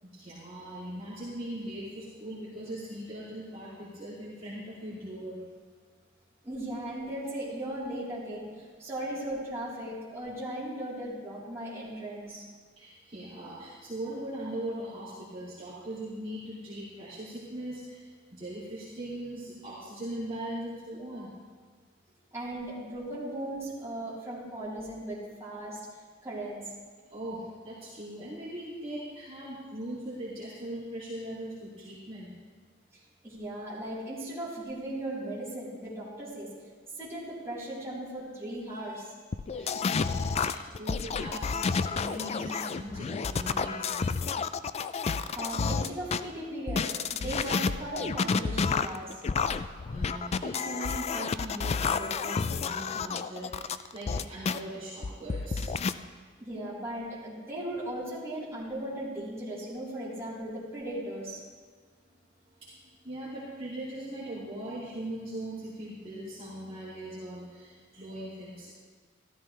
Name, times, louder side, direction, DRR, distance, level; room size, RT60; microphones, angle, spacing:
voice 1, 0.0-5.4 12.8-21.3 27.1-32.3 39.5-44.3 49.8-55.7 62.6-62.8 63.0-68.7, right 1 dB, 30° right, -10 dB, 2.6 m, -40 dB
voice 2, 6.4-12.5 22.3-25.8 26.2-26.6 33.2-36.5 37.0-39.1 45.3-49.2 56.4-61.4, right 1 dB, 15° right, -9 dB, 3.7 m, -37 dB
sound 1, 39.3-46.2 46.7-54.6 55.0-55.9, left 5 dB, 30° left, 0.3 m, -30 dB
14.0 x 13.0 x 3.3 m, 1.5 s
head